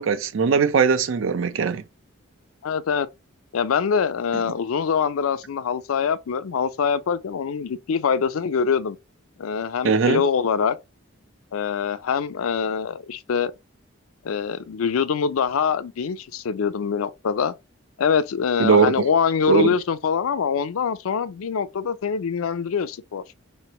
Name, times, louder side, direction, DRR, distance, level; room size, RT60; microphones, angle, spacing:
voice 1, 0.0-1.8 9.8-10.2 18.6-19.1 19.5-19.7, right 5 dB, 65° right, 0.4 m, -19 dB
voice 2, 2.6-3.1 3.5-9.0 9.4-10.8 11.5-13.5 14.2-17.5 18.0-23.2, left 6 dB, 85° left, 0.4 m, -24 dB
3.7 x 3.2 x 2.8 m
head